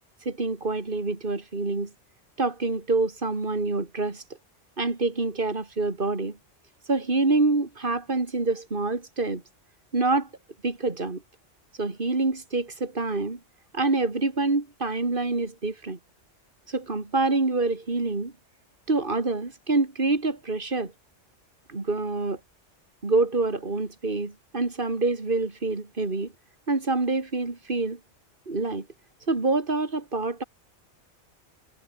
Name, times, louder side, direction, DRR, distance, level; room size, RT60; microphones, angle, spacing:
voice 1, 0.2-1.9 2.4-4.2 4.8-6.4 6.9-9.4 9.9-10.3 10.6-11.2 11.8-13.4 13.7-16.0 16.7-18.3 18.9-20.9 21.7-22.4 23.0-26.3 26.7-28.0 28.5-28.9 29.3-30.4, right 3 dB, 45° right, 3.0 m, -26 dB
omnidirectional pair, 1.2 m